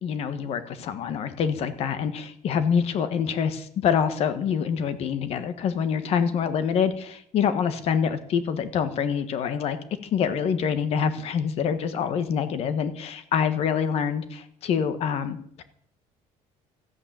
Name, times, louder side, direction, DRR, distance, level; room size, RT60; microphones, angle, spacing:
voice 1, 0.0-9.8 10.1-15.6, left 7 dB, 50° left, 11 dB, 1.4 m, -26 dB
14.0 x 8.7 x 8.7 m, 0.63 s
cardioid pair, 160°, 13 cm